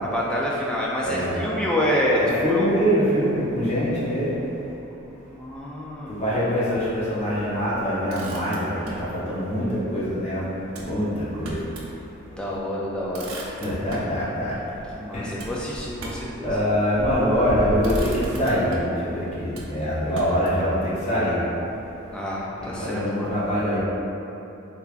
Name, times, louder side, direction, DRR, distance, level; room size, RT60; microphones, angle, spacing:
voice 1, 0.0-3.0 5.2-6.2 12.4-13.3 14.9-16.6 22.1-23.3, left 1 dB, 5° left, -6 dB, 0.3 m, -27 dB
voice 2, 1.0-1.4 2.2-4.3 6.1-10.5 10.8-11.5 13.6-14.5 15.1-15.4 16.4-18.7 19.0-21.4 22.8-23.8, equal, 30° left, -10 dB, 0.8 m, -24 dB
Motor vehicle (road), 8.1-9.1 10.7-11.9 12.3-12.4 12.8-14.2 15.4-16.4 17.2-17.5 17.8-19.0 19.5-20.7, right 1 dB, 80° right, 0.5 m, -39 dB
3.4 x 3.2 x 2.4 m, 3.0 s
head